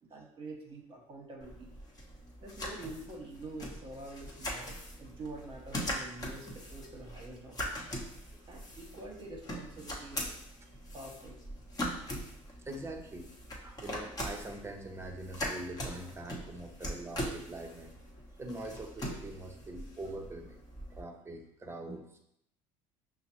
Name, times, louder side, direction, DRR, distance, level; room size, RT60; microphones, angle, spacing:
voice 1, 0.0-1.7 2.4-7.8 8.5-10.4 10.9-11.4, right 2 dB, 35° right, -1 dB, 1.0 m, -46 dB
sound 1, 1.4-21.0, equal, 25° left, 1.0 m, -41 dB
voice 2, 12.6-13.3 13.6-17.9 18.4-20.6 20.9-22.2, right 2 dB, 20° right, 3 dB, 0.6 m, -43 dB
5.6 x 2.0 x 2.9 m, 0.77 s
supercardioid pair, 85°, 14 cm